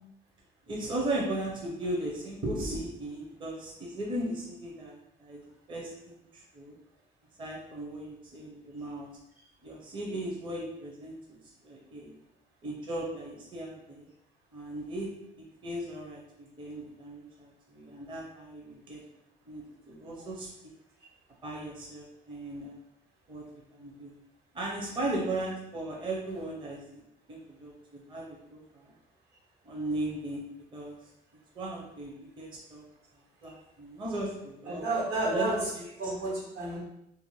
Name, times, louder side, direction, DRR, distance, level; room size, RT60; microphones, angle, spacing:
voice 1, 0.7-5.4 5.7-6.8 7.4-9.1 9.6-11.4 11.6-12.1 12.6-14.1 14.5-15.1 15.4-19.0 19.5-20.5 21.4-22.8 23.3-23.4 23.7-24.1 24.5-27.0 27.3-28.9 29.6-30.4 30.7-31.0 31.5-32.8 33.4-34.8 35.3-35.8, right 1 dB, 30° right, -3 dB, 0.6 m, -37 dB
voice 2, 34.7-35.7 36.0-36.8, right 2 dB, 75° right, -4 dB, 1.1 m, -31 dB
2.5 x 2.4 x 3.0 m, 0.82 s
cardioid pair, 110°, 17 cm